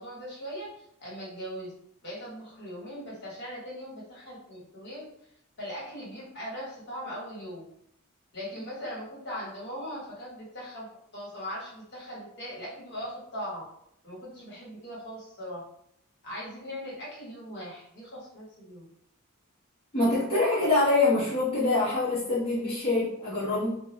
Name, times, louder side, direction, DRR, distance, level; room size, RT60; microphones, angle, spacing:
voice 1, 0.0-1.7 2.0-5.0 5.6-7.6 8.3-10.9 11.1-13.6 14.0-15.6 16.2-18.8, equal, 55° left, -5 dB, 1.2 m, -39 dB
voice 2, 19.9-23.8, left 2 dB, 25° left, -11 dB, 0.8 m, -25 dB
2.3 x 2.3 x 3.0 m, 0.73 s
head